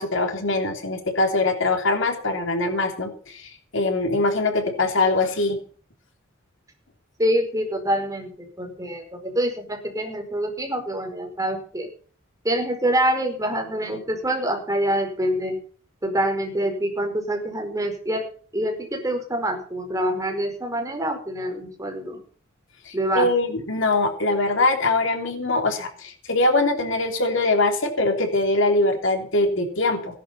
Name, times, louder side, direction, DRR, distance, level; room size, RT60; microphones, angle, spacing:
voice 1, 0.0-5.6 22.8-30.2, left 2 dB, 70° left, 4 dB, 3.3 m, -22 dB
voice 2, 7.2-11.9 12.4-15.6 16.0-18.3 18.5-22.2 22.9-23.3, right 1 dB, 15° right, 3 dB, 4.9 m, -26 dB
17.5 x 11.0 x 5.7 m, 0.43 s
head